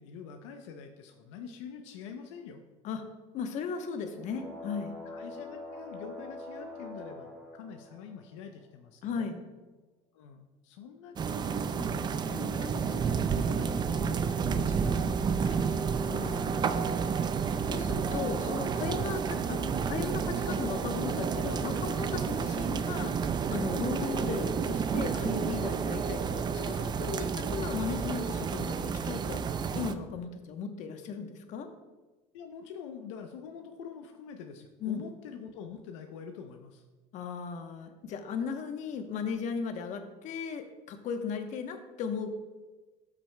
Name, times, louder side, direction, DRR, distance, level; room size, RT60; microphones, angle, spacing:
voice 1, 0.0-2.6 5.0-9.3 10.1-15.8 17.9-18.2 19.3-19.5 24.0-24.2 32.3-36.8, left 6 dB, 85° left, 5 dB, 0.6 m, -45 dB
voice 2, 3.3-5.0 9.0-9.4 16.1-17.1 17.7-31.7 34.8-35.0 37.1-42.3, left 6 dB, 55° left, 6 dB, 1.0 m, -36 dB
sound 1, 4.0-8.6 11.9-14.8, left 1 dB, 5° right, 1.7 m, -46 dB
sound 2, 11.2-29.9, right 6 dB, 30° right, 0.4 m, -30 dB
13.0 x 6.0 x 2.2 m, 1.2 s
supercardioid pair, 100°, 15 cm